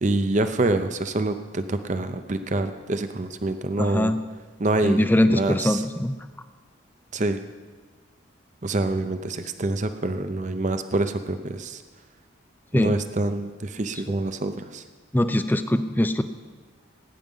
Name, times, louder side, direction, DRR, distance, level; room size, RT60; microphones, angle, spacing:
voice 1, 0.0-4.1 4.6-5.0 5.3-5.8 7.1-7.4 8.6-11.8 12.7-14.8, right 2 dB, 35° right, 9 dB, 0.6 m, -26 dB
voice 2, 3.8-4.2 4.8-6.2 12.7-12.9 15.1-16.2, left 1 dB, 10° left, 10 dB, 0.5 m, -22 dB
17.0 x 9.3 x 5.5 m, 1.4 s
head